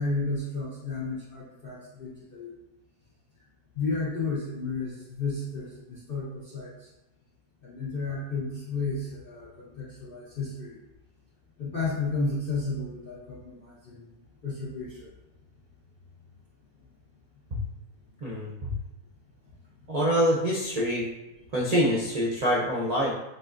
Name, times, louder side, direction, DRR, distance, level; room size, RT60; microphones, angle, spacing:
voice 1, 0.0-2.5 3.7-6.9 7.6-10.8 11.6-14.1 14.4-15.1, left 3 dB, 60° left, -6 dB, 0.5 m, -32 dB
voice 2, 18.2-18.7 19.9-21.1 21.5-23.1, equal, 85° right, -5 dB, 0.3 m, -25 dB
7.7 x 2.6 x 2.5 m, 0.96 s
omnidirectional pair, 1.9 m